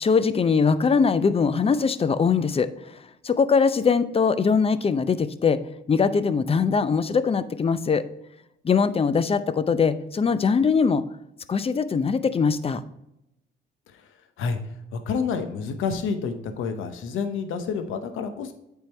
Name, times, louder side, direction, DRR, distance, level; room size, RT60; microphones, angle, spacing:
voice 1, 0.0-3.0 3.2-5.6 5.9-8.1 8.6-11.0 11.5-12.8, left 5 dB, 30° left, 13 dB, 0.5 m, -22 dB
voice 2, 14.9-18.5, left 5 dB, 85° left, 7 dB, 0.9 m, -29 dB
8.8 x 3.7 x 4.4 m, 0.83 s
cardioid pair, 90°, 20 cm